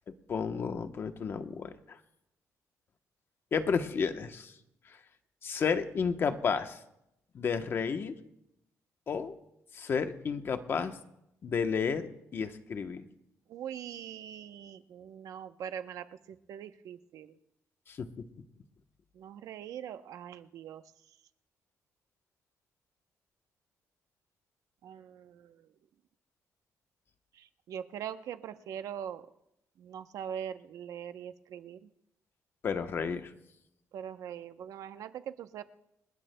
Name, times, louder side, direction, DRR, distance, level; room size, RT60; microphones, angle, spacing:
voice 1, 0.1-2.0 3.5-4.5 4.9-5.0 5.4-6.8 7.3-8.1 9.1-9.3 9.7-11.0 11.4-13.1 17.9-18.1 32.6-33.3, left 6 dB, 40° left, 8 dB, 0.9 m, -32 dB
voice 2, 13.5-17.3 19.1-20.8 24.8-25.7 27.3-29.3 29.8-31.9 33.9-35.6, right 9 dB, 75° right, 10 dB, 0.8 m, -42 dB
28.5 x 20.0 x 2.2 m, 0.82 s
cardioid pair, 150°, 6 cm